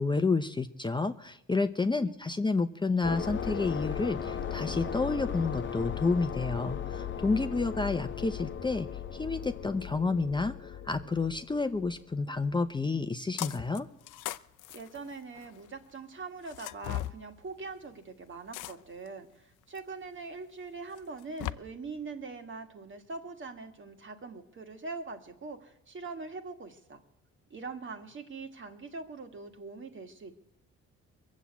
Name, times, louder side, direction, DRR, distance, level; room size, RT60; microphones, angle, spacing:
voice 1, 0.0-13.9, left 3 dB, 15° left, 8 dB, 0.7 m, -30 dB
sound 1, 3.0-12.5, left 8 dB, 40° left, 1.0 m, -37 dB
sound 2, 13.4-13.8 14.1-15.6 16.5-17.2 18.5-19.1 19.8-19.9 21.0-21.5, left 15 dB, 90° left, 0.6 m, -37 dB
voice 2, 14.7-27.0 27.5-30.3, right 4 dB, 40° right, 7 dB, 2.0 m, -42 dB
22.5 x 7.5 x 8.3 m, 0.83 s
cardioid pair, 90°, 30 cm